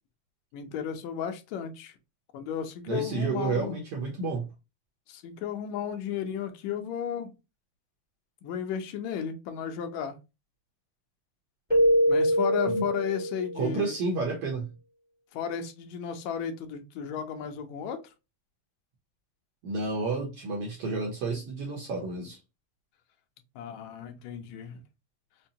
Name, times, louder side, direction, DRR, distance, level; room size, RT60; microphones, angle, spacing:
voice 1, 0.5-1.9 2.3-3.8 5.1-7.3 8.4-10.1 12.1-13.9 15.3-18.0 23.6-24.8, left 8 dB, 75° left, 1.9 m, -34 dB
voice 2, 2.9-4.5 12.7-12.8 13.6-14.7 19.6-22.4, right 3 dB, 65° right, 1.7 m, -30 dB
Keyboard (musical), 11.7-13.7, equal, 5° right, 1.0 m, -24 dB
5.4 x 2.2 x 2.7 m
omnidirectional pair, 3.4 m